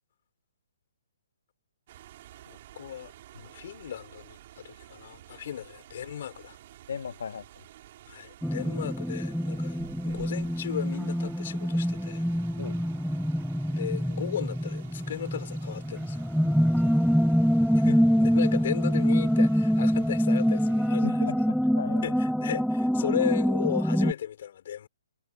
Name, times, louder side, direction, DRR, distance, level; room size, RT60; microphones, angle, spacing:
sound 1, 1.9-20.9, right 13 dB, 40° right, 6.4 m, -51 dB
voice 1, 2.5-6.6 8.1-12.2 13.7-16.3 17.7-21.2 22.0-24.9, left 10 dB, 50° left, 6.4 m, -36 dB
voice 2, 6.9-7.4 12.6-12.7 16.5-17.1 21.0-22.0, left 6 dB, 75° left, 2.7 m, -37 dB
sound 2, 8.4-24.1, equal, ahead, 0.6 m, -25 dB
hypercardioid pair, 165°, 0 cm